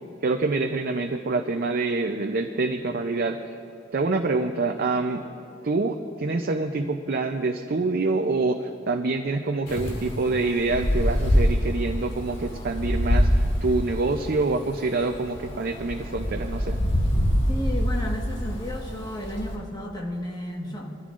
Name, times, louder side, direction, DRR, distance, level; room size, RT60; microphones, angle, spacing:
voice 1, 0.2-3.4 3.9-5.2 5.6-16.8, right 3 dB, 50° right, 4 dB, 0.5 m, -26 dB
Wind, 9.7-19.5, equal, 60° left, 1.8 m, -25 dB
voice 2, 17.5-21.0, equal, 20° left, 0 dB, 1.4 m, -33 dB
22.0 x 13.5 x 2.5 m, 2.7 s
head